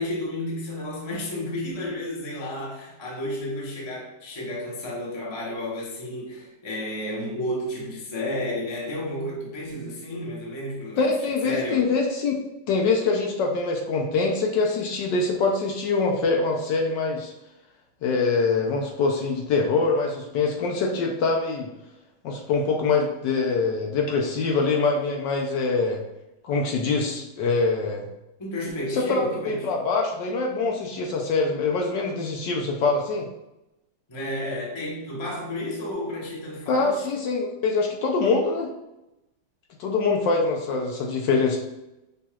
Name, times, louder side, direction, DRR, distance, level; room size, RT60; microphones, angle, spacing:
voice 1, 0.0-11.1 11.4-11.9 28.4-29.7 34.1-37.1, left 1 dB, 40° left, -4 dB, 0.3 m, -32 dB
voice 2, 11.0-12.3 12.7-17.3 18.0-21.7 22.2-26.0 26.4-28.1 28.9-33.3 36.7-38.7 39.8-41.6, left 4 dB, 70° left, 0 dB, 1.1 m, -24 dB
5.5 x 3.0 x 2.3 m, 0.93 s
omnidirectional pair, 2.2 m